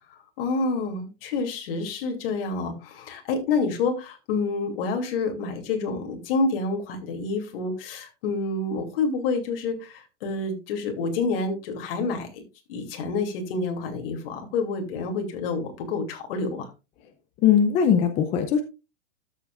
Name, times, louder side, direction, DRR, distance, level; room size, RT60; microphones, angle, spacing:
voice 1, 0.1-12.4 12.7-16.7, left 3 dB, 55° left, 4 dB, 2.8 m, -28 dB
voice 2, 17.4-18.6, left 8 dB, 20° left, 7 dB, 0.5 m, -20 dB
13.0 x 7.3 x 2.4 m, 0.28 s
supercardioid pair, 155°, 35 cm